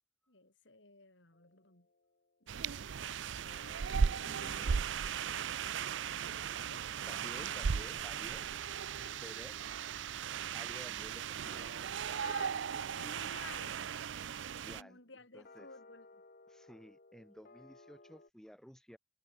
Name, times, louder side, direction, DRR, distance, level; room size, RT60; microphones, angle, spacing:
voice 1, 0.3-1.9 2.4-3.1 4.2-5.0 6.3-6.9 8.5-9.2 12.2-12.6 13.0-13.8 14.7-16.2, left 3 dB, 65° left, 3.8 m, -55 dB
sound 1, 1.3-2.7 3.4-18.3, left 3 dB, 45° left, 1.4 m, -63 dB
sound 2, 2.5-14.8, right 6 dB, 65° right, 0.5 m, -37 dB
voice 2, 7.1-8.4 9.2-9.5 10.3-11.7 12.0-12.8 14.1-15.0 15.3-15.7 16.5-19.0, equal, 5° left, 2.5 m, -54 dB
head